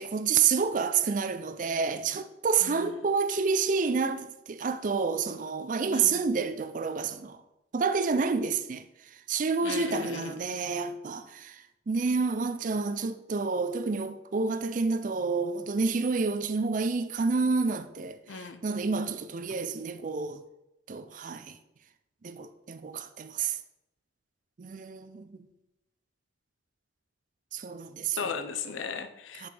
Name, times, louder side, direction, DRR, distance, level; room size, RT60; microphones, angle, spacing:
voice 1, 0.0-7.4 7.7-8.8 9.1-20.4 20.9-21.6 22.2-23.6 24.6-25.4 27.5-28.4 29.4-29.5, right 5 dB, 45° right, 0.4 m, -29 dB
voice 2, 2.6-2.9 5.9-6.2 9.6-10.4 18.3-18.6 28.2-29.5, left 5 dB, 90° left, 0.6 m, -37 dB
8.4 x 5.2 x 3.4 m
head